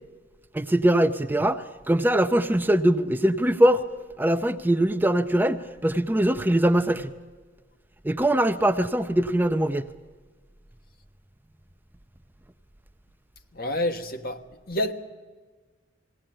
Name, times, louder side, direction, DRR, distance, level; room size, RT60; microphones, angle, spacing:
voice 1, 0.5-3.8 4.2-7.1 8.0-9.9, right 1 dB, 10° right, 0.6 m, -22 dB
voice 2, 13.5-14.4 14.7-14.9, left 1 dB, 50° left, 1.4 m, -28 dB
21.0 x 17.0 x 8.8 m
head